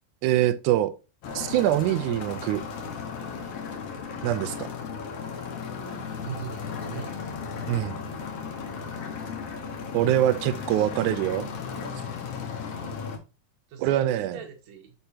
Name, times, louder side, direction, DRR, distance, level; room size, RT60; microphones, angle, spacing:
voice 1, 0.2-0.9 1.3-2.6 4.2-4.7 7.7-8.0 9.9-11.5 13.8-14.4, right 12 dB, 80° right, 1.8 m, -24 dB
sound 1, 1.2-13.2, left 5 dB, 60° left, 1.9 m, -35 dB
voice 2, 6.1-7.3 10.5-11.2 13.7-14.9, right 7 dB, 60° right, 2.5 m, -41 dB
6.7 x 5.7 x 2.8 m
omnidirectional pair, 4.0 m